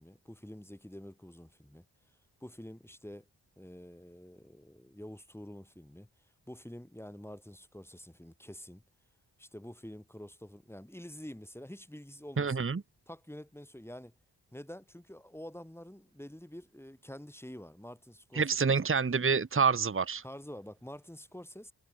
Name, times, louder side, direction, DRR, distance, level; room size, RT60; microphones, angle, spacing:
voice 1, 0.0-1.9 2.4-3.3 3.6-6.1 6.5-8.8 9.4-12.7 13.1-14.1 14.5-18.6 20.2-21.7, equal, 5° left, 6.9 m, -47 dB
voice 2, 12.4-12.8 18.3-20.2, right 5 dB, 30° right, 1.1 m, -27 dB
wide cardioid pair, 70°, 42 cm